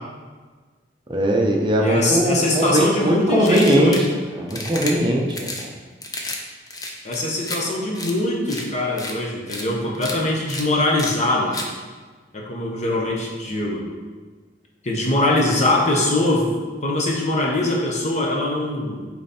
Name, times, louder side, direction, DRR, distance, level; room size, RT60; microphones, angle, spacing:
voice 1, 1.1-4.1 4.4-5.5, right 1 dB, 25° right, 0 dB, 0.6 m, -19 dB
voice 2, 1.8-4.1 7.0-11.6 12.3-13.8 14.8-16.6 16.8-19.0, left 1 dB, 40° left, -1 dB, 1.1 m, -22 dB
sound 1, 3.4-4.1 4.5-4.9 5.3-5.6 6.0-6.4 6.7-7.6 7.9-8.1 8.5-8.6 9.0-9.1 9.5-9.6 9.9-10.1 10.5-10.6 11.0-11.1 11.5-11.7, left 2 dB, 20° left, 0.7 m, -31 dB
8.7 x 3.2 x 4.3 m, 1.4 s
head